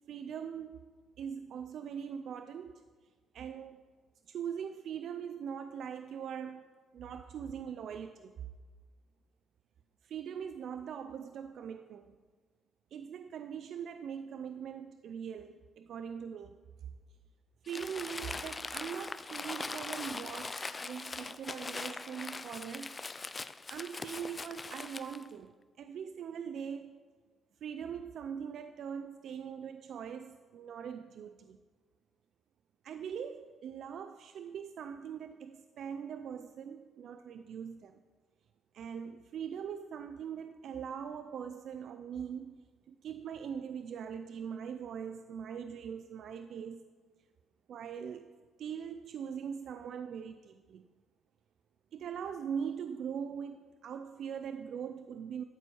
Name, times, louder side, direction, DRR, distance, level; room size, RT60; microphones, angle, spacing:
voice 1, 0.1-0.9 1.2-2.8 3.3-3.8 4.3-6.7 6.9-8.5 10.0-12.2 12.9-16.6 17.7-23.0 23.3-23.4 23.7-27.0 27.6-31.6 32.8-38.0 38.7-42.6 42.9-46.8 47.7-50.8 51.9-55.4, right 7 dB, 65° right, 9 dB, 0.4 m, -41 dB
Crumpling crinkling, 17.7-25.3, left 3 dB, 25° left, 0.4 m, -41 dB
12.5 x 4.5 x 7.0 m, 1.5 s
cardioid pair, 100°, 0 cm